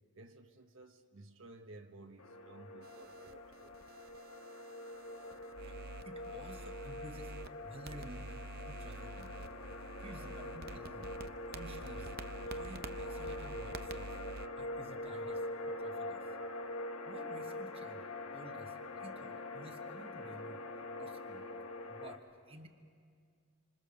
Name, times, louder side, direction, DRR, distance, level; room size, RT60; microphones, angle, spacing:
voice 1, 0.1-3.7, right 2 dB, 60° right, 5 dB, 1.3 m, -55 dB
sound 1, 2.2-22.2, left 2 dB, 80° left, 1.6 m, -44 dB
sound 2, 2.8-7.5 7.8-14.5, right 3 dB, 45° right, 0.7 m, -48 dB
voice 2, 5.6-9.4 10.0-12.1 12.5-14.2 14.6-16.4 17.0-18.1 18.3-20.6 21.0-21.5 21.9-22.7, right 1 dB, 25° right, 5 dB, 1.3 m, -53 dB
26.5 x 26.0 x 6.8 m, 2.1 s
head